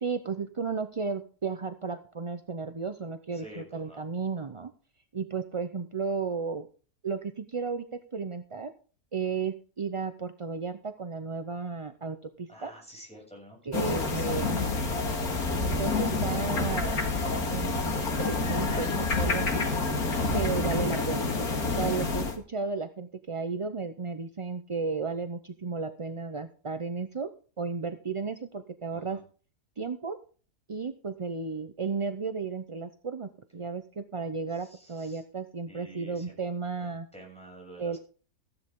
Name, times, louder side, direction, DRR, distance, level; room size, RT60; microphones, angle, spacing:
voice 1, 0.0-4.7 5.1-6.7 7.0-8.7 9.1-12.7 13.7-14.6 15.6-17.0 17.5-17.8 18.2-19.7 20.3-21.3 21.8-27.3 27.6-29.2 29.8-30.2 30.7-37.1 37.8-38.0, right 4 dB, 40° right, 9 dB, 0.5 m, -34 dB
voice 2, 3.3-4.0 12.5-13.6 13.8-14.8 28.9-29.2 34.5-35.2 35.7-36.3 36.8-38.0, right 1 dB, 5° left, 0 dB, 7.1 m, -49 dB
sound 1, 13.7-22.4, left 3 dB, 80° left, 2.5 m, -28 dB
15.0 x 10.5 x 3.7 m, 0.38 s
omnidirectional pair, 1.6 m